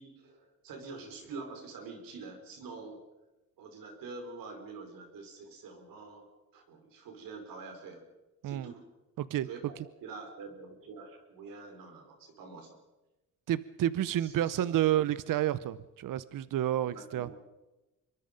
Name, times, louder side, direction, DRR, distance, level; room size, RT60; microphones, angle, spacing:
voice 1, 0.0-3.0 3.6-8.0 8.4-8.8 9.4-9.6 10.0-12.8 14.2-14.8 16.9-17.4, right 4 dB, 85° right, 4 dB, 4.7 m, -46 dB
voice 2, 13.5-17.3, right 12 dB, 70° right, 16 dB, 0.8 m, -30 dB
25.0 x 22.5 x 5.3 m, 1.1 s
cardioid pair, 90°, 33 cm